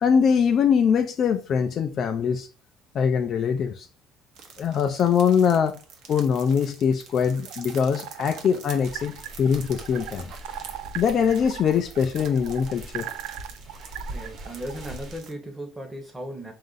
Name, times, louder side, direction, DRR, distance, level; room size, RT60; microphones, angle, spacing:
voice 1, 0.0-2.5 2.9-3.9 4.6-5.8 6.1-10.3 10.9-13.1, left 7 dB, 45° left, 0.4 m, -22 dB
sound 1, 4.4-15.3, right 6 dB, 65° right, 0.7 m, -46 dB
sound 2, 7.3-14.9, right 12 dB, 80° right, 0.3 m, -40 dB
sound 3, 8.7-15.2, right 1 dB, 35° right, 1.0 m, -42 dB
voice 2, 14.1-16.5, right 1 dB, 10° right, 0.9 m, -36 dB
3.6 x 2.5 x 3.8 m
cardioid pair, 140°, 0 cm